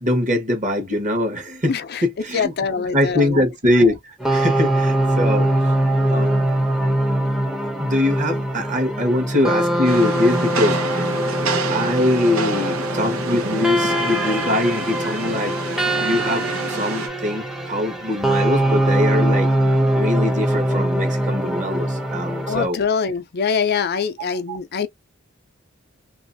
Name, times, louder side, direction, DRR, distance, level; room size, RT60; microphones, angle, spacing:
voice 1, 0.0-5.5 6.1-6.5 7.6-11.2 11.7-19.5 19.9-22.8 24.5-24.6, left 1 dB, 35° right, 1.5 m, -22 dB
voice 2, 1.7-2.0 2.3-3.4 22.5-24.9, left 6 dB, 50° left, 0.5 m, -23 dB
sound 1, 4.2-22.7, right 1 dB, ahead, 0.8 m, -22 dB
Rain, 9.8-17.1, right 3 dB, 85° right, 1.1 m, -28 dB
3.1 x 3.0 x 2.6 m
head